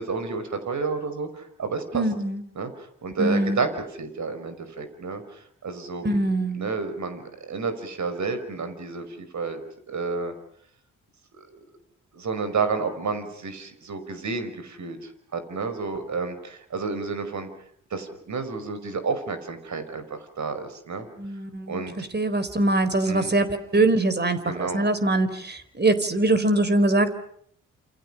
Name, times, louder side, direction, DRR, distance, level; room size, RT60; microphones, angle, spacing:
voice 1, 0.0-2.0 2.6-2.7 3.0-3.7 4.0-6.2 6.5-9.6 9.9-10.3 11.3-11.6 12.1-17.5 17.9-20.0 20.4-21.1 21.7-21.9 23.1-23.3 24.4-24.9, right 4 dB, 55° right, 9 dB, 5.4 m, -30 dB
voice 2, 1.9-2.4 3.2-3.6 6.0-6.7 21.2-27.1, right 2 dB, 30° right, 12 dB, 4.2 m, -23 dB
28.5 x 28.0 x 5.8 m, 0.66 s
hypercardioid pair, 45°, 35 cm